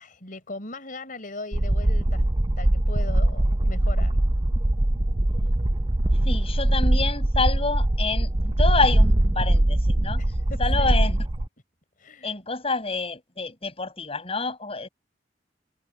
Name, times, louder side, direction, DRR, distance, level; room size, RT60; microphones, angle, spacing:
voice 1, 0.0-2.2 2.6-4.1 10.2-10.9 12.0-12.3, left 2 dB, 50° left, 5.1 m, -39 dB
sound 1, 1.5-11.5, right 1 dB, 25° right, 0.7 m, -22 dB
voice 2, 6.2-10.2 10.6-11.3 12.2-14.9, left 3 dB, 35° left, 7.5 m, -28 dB
head